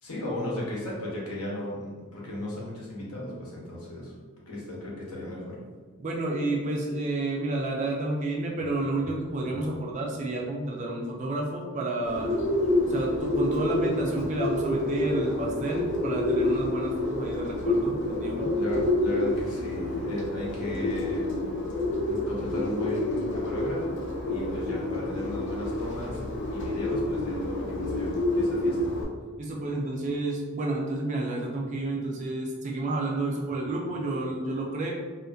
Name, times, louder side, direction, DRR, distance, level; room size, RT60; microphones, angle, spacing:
voice 1, 0.0-4.1 4.5-5.5 18.5-21.3 22.0-23.9 24.3-26.2 26.5-28.8, left 1 dB, 80° left, -5 dB, 0.8 m, -35 dB
voice 2, 6.0-12.3 12.8-18.5 29.4-34.9, right 2 dB, 35° right, -1 dB, 0.3 m, -30 dB
Bird, 12.0-29.0, left 1 dB, 50° left, 0.4 m, -28 dB
2.5 x 2.5 x 2.3 m, 1.5 s
head